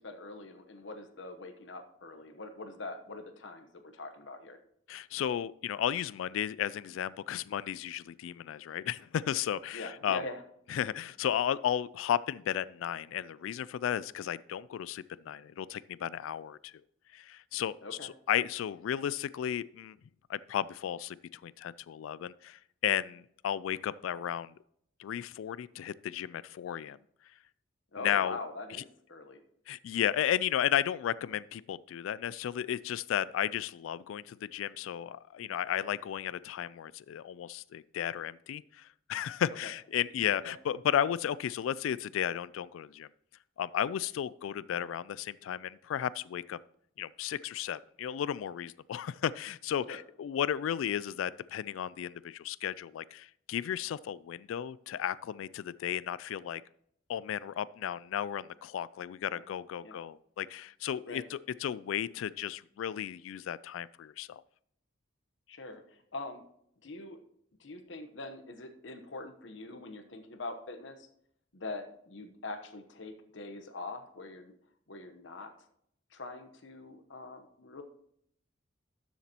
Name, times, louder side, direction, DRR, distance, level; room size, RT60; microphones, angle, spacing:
voice 1, 0.0-4.6 9.7-10.4 17.8-18.1 27.9-29.4 39.6-39.7 40.4-40.5 44.5-44.6 49.9-50.0 59.3-59.6 59.8-60.0 61.0-61.3 65.5-66.4 66.8-67.2 67.6-71.1 71.5-74.5 74.9-75.5 76.1-77.8, left 2 dB, 65° left, 8 dB, 1.0 m, -43 dB
voice 2, 4.9-10.2 10.7-16.7 17.1-17.8 18.0-20.0 20.3-24.5 25.0-27.0 28.0-28.4 29.7-43.1 43.6-46.6 47.0-56.6 57.1-64.4, left 10 dB, 90° left, 20 dB, 0.3 m, -34 dB
12.5 x 7.2 x 2.9 m, 0.70 s
head